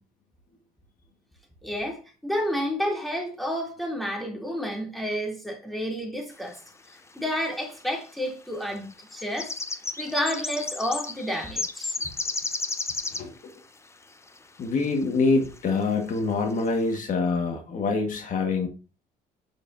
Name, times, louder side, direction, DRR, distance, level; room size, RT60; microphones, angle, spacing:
voice 1, 1.6-6.6 7.1-9.5 10.0-12.0, equal, ahead, 2.9 m, -30 dB
sound 1, 6.9-7.0 7.3-7.9 8.7-13.4 14.3-14.4 14.9-15.0 15.4-15.7 16.1-16.2 16.5-16.8, left 3 dB, 15° left, 0.7 m, -32 dB
voice 2, 14.6-18.7, left 3 dB, 50° left, 1.6 m, -25 dB
8.7 x 6.6 x 2.7 m
cardioid pair, 110°, 17 cm